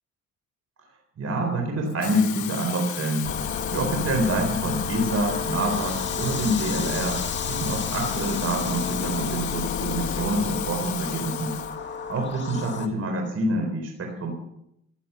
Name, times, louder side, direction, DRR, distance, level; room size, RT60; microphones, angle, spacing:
voice 1, 1.2-3.3 3.7-7.2 7.5-11.6 12.1-14.3, right 1 dB, 50° right, 2 dB, 3.8 m, -26 dB
Water tap faucet / Fill (with liquid), 1.9-11.8 12.2-12.4, left 13 dB, 75° left, 0.9 m, -35 dB
sound 1, 3.2-12.9, left 5 dB, 40° left, 1.8 m, -31 dB
15.0 x 11.5 x 6.9 m, 0.79 s
cardioid pair, 90°, 30 cm